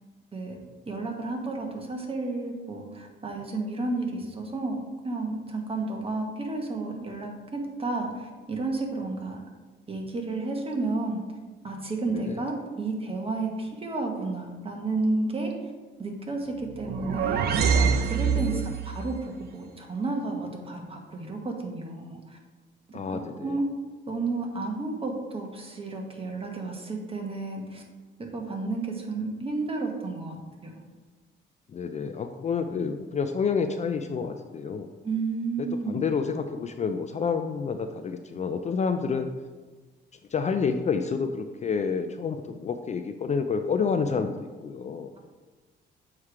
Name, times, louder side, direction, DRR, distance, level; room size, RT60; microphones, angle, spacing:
voice 1, 0.9-9.4 9.9-11.2 11.6-15.7 16.0-17.5 18.1-22.4 22.9-23.7 24.1-27.8 28.2-30.4 30.6-30.8 35.0-36.0, right 3 dB, 30° right, 1 dB, 1.3 m, -32 dB
sound 1, 16.6-19.0, right 6 dB, 55° right, 0.5 m, -25 dB
voice 2, 18.3-18.6 22.9-23.6 31.7-34.9 35.6-39.3 40.3-45.1, left 5 dB, 35° left, 7 dB, 0.4 m, -29 dB
7.2 x 3.2 x 4.8 m, 1.3 s
cardioid pair, 90°, 20 cm